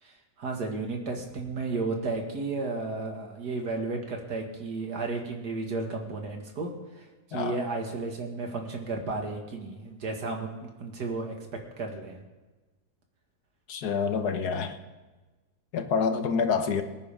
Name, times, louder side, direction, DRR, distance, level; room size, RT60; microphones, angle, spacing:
voice 1, 0.0-11.3 11.8-12.2, right 3 dB, 80° right, 2 dB, 2.5 m, -33 dB
voice 2, 13.7-14.8 15.7-16.8, left 5 dB, 75° left, 7 dB, 1.6 m, -27 dB
23.5 x 9.9 x 3.6 m, 1.2 s
omnidirectional pair, 1.7 m